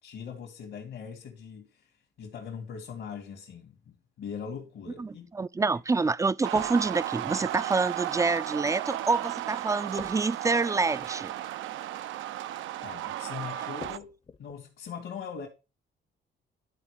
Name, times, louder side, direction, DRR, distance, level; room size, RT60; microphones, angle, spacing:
voice 1, 0.0-3.7 4.2-5.3 5.7-5.8 12.8-14.1 14.4-15.5, left 7 dB, 75° left, 2.3 m, -41 dB
sound 1, 4.9-5.2 6.5-7.4 10.0-11.5 11.8-12.0 13.8-14.6, left 5 dB, 30° left, 0.7 m, -48 dB
voice 2, 5.0-11.3, right 4 dB, 15° right, 0.4 m, -27 dB
sound 2, 6.4-14.0, right 13 dB, 75° right, 0.5 m, -35 dB
12.0 x 4.1 x 5.1 m
cardioid pair, 90°, 20 cm